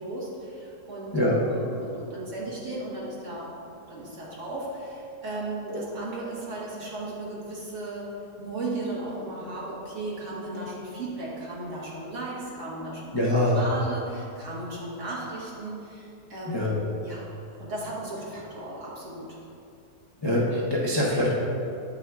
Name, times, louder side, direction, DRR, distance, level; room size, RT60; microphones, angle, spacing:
voice 1, 0.0-3.5 3.9-8.1 8.4-13.1 13.5-16.7 17.0-17.2 17.6-19.4, right 2 dB, 50° right, -6 dB, 1.6 m, -36 dB
voice 2, 13.1-13.6 16.4-16.8 20.2-21.3, left 1 dB, 30° left, -6 dB, 0.4 m, -24 dB
8.7 x 6.2 x 2.4 m, 2.6 s
omnidirectional pair, 1.7 m